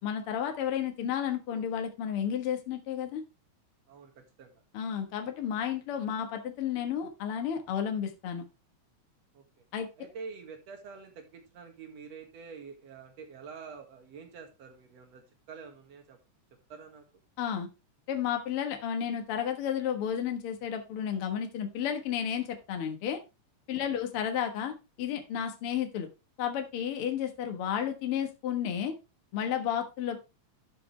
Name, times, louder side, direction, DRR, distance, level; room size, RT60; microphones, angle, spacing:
voice 1, 0.0-3.2 4.7-8.4 9.7-9.9 17.4-17.7 18.1-23.2 23.7-26.1 26.4-28.9 29.3-30.2, left 9 dB, 55° left, 5 dB, 2.0 m, -32 dB
voice 2, 3.9-4.6 9.3-9.4 10.0-15.2 15.5-16.2 16.7-17.0, right 5 dB, 60° right, 4 dB, 2.9 m, -47 dB
13.0 x 5.3 x 3.2 m, 0.26 s
omnidirectional pair, 3.3 m